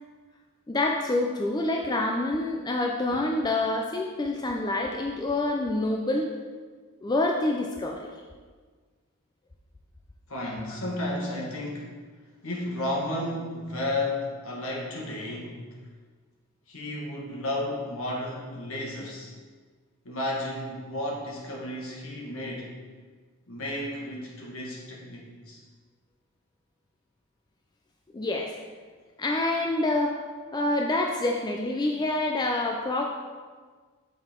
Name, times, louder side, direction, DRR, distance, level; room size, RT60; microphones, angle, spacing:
voice 1, 0.7-6.3 7.0-8.1 28.1-28.5 29.2-30.2 30.5-33.0, left 2 dB, 20° left, 1 dB, 0.3 m, -27 dB
voice 2, 10.3-11.9 12.4-15.6 16.7-19.3 20.0-22.7 23.5-25.6, left 1 dB, 70° left, -2 dB, 1.6 m, -33 dB
7.5 x 3.9 x 4.4 m, 1.5 s
head